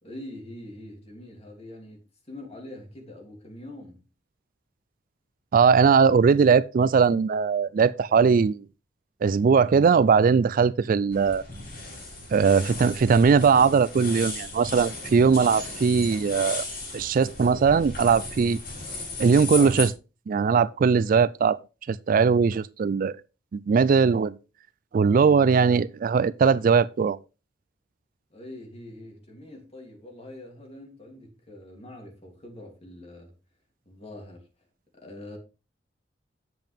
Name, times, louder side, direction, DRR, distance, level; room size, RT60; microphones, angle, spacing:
voice 1, 0.0-4.1 28.3-33.3 33.9-34.5 34.9-35.4, left 1 dB, 35° left, 3.0 m, -44 dB
voice 2, 5.5-8.6 9.2-11.4 12.3-16.6 16.9-18.6 19.2-19.9 20.3-21.6 21.9-23.2 23.5-24.4 24.9-27.2, right 5 dB, 50° right, 0.3 m, -20 dB
sound 1, 11.1-19.9, left 3 dB, 55° left, 5.6 m, -36 dB
9.0 x 7.7 x 3.5 m
head